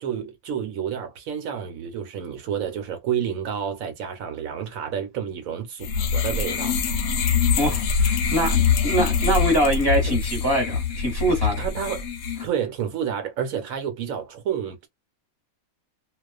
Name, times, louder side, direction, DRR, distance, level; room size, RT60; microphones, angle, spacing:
voice 1, 0.0-6.8 10.0-10.1 11.6-12.0 12.4-14.9, right 8 dB, 70° right, 1.0 m, -30 dB
sound 1, 5.8-12.5, left 6 dB, 70° left, 0.9 m, -24 dB
voice 2, 7.6-11.6, equal, 20° left, 1.0 m, -23 dB
2.3 x 2.3 x 2.3 m
omnidirectional pair, 1.5 m